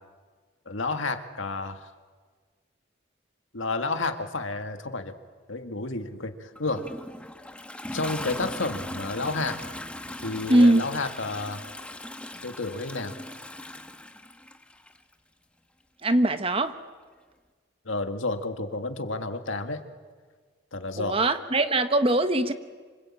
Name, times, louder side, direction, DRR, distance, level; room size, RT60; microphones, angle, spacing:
voice 1, 0.6-1.9 3.5-5.1 5.5-6.9 7.9-9.6 10.2-11.6 12.4-13.1 17.8-19.8 20.7-21.2, left 3 dB, 75° left, 7 dB, 1.8 m, -31 dB
Toilet flush, 6.5-15.0 16.0-16.1, left 1 dB, 5° left, 1.0 m, -39 dB
voice 2, 10.5-10.8 16.0-16.8 21.0-22.5, right 1 dB, 30° right, 10 dB, 1.1 m, -21 dB
26.5 x 25.5 x 8.7 m, 1.5 s
head